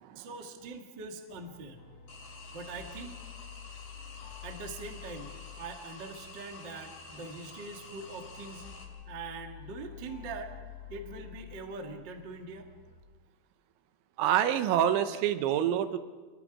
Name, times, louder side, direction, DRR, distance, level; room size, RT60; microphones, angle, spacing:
voice 1, 0.1-1.8 2.5-3.2 4.4-8.6 9.1-10.5 10.9-12.7, right 3 dB, 55° right, 3 dB, 1.2 m, -43 dB
sound 1, 1.3-13.0, left 8 dB, 70° left, 4.4 m, -49 dB
sound 2, 2.1-8.8, left 3 dB, 55° left, 4.5 m, -49 dB
voice 2, 14.2-16.0, right 10 dB, 80° right, 10 dB, 3.1 m, -27 dB
27.5 x 22.0 x 5.0 m, 1.4 s
omnidirectional pair, 5.6 m